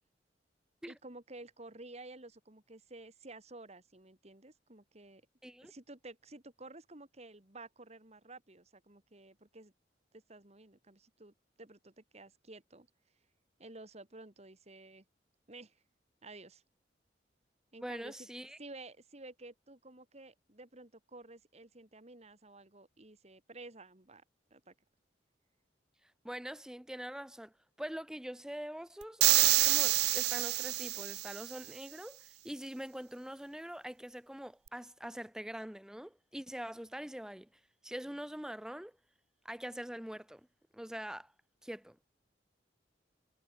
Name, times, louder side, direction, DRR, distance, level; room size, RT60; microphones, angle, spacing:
voice 1, 0.9-5.2 5.6-9.7 10.1-12.9 13.6-15.0 15.5-15.8 16.2-16.6 17.7-18.3 18.6-24.2 24.5-24.7, right 2 dB, 40° right, 2.6 m, -52 dB
voice 2, 5.4-5.7 17.8-18.6 26.2-27.5 27.8-37.5 37.8-39.0 39.4-40.5 40.7-41.3 41.6-42.0, equal, 5° right, 0.6 m, -44 dB
sound 1, 29.2-31.5, right 17 dB, 65° right, 0.4 m, -27 dB
head